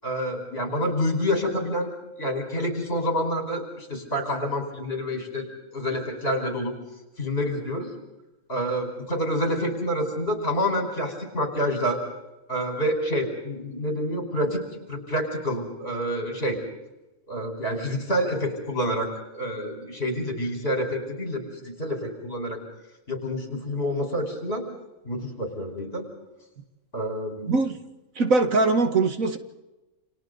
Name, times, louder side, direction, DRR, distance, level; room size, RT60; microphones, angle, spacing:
voice 1, 0.0-1.9 2.2-5.5 5.7-6.7 7.2-7.9 8.5-12.0 12.5-14.6 14.9-16.6 17.3-22.6 23.1-24.7 25.1-26.1 26.9-27.5, equal, 45° left, 3 dB, 5.5 m, -28 dB
voice 2, 28.2-29.4, right 3 dB, 70° right, 7 dB, 2.1 m, -21 dB
29.5 x 28.5 x 4.1 m, 1.0 s
omnidirectional pair, 1.5 m